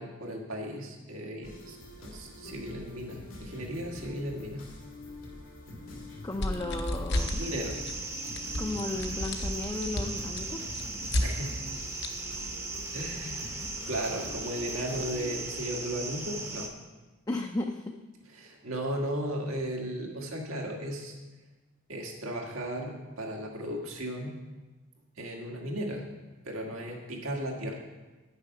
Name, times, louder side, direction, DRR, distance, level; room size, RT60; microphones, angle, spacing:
voice 1, 0.0-4.6 7.4-7.8 11.2-11.6 12.9-16.7 18.3-21.2 21.9-24.3 25.2-26.1 26.4-27.8, equal, 85° right, 0 dB, 1.8 m, -36 dB
sound 1, 1.4-15.4, left 1 dB, 85° left, 2.3 m, -46 dB
voice 2, 6.2-7.4 8.6-10.6 17.3-17.9, left 2 dB, 20° left, 3 dB, 0.5 m, -34 dB
sound 2, 6.4-7.4 7.7-8.0 8.3-11.3 12.0-12.1, left 1 dB, 55° left, 0.8 m, -31 dB
sound 3, 7.1-16.7, right 3 dB, 15° right, 0.7 m, -38 dB
9.5 x 6.8 x 5.6 m, 1.2 s
head